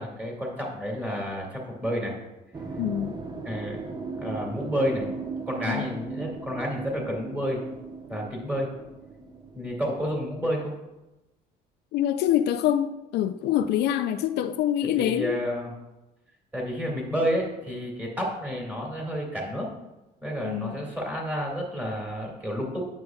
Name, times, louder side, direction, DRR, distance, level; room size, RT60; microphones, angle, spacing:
voice 1, 0.0-2.1 3.4-3.8 4.2-5.1 5.5-7.6 8.1-8.7 9.5-10.7 14.8-15.7 16.5-19.7 20.2-22.8, equal, 10° right, 2.1 m, -30 dB
sound 1, 2.5-10.1, right 4 dB, 25° right, 0.7 m, -38 dB
voice 2, 2.8-3.2 5.7-5.9 11.9-15.4 20.4-20.8, left 11 dB, 75° left, 0.4 m, -25 dB
9.4 x 6.5 x 2.3 m
cardioid pair, 110°, 17 cm